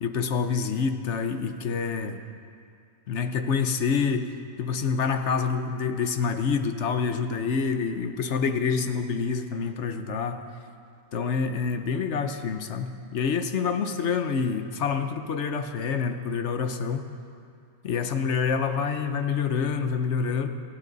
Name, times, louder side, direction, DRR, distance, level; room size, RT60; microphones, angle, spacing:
voice 1, 0.0-2.2 3.1-4.3 4.6-10.4 11.1-17.1 17.8-20.5, left 5 dB, 50° left, 8 dB, 0.9 m, -27 dB
28.5 x 12.0 x 4.0 m, 2.4 s
omnidirectional pair, 1.9 m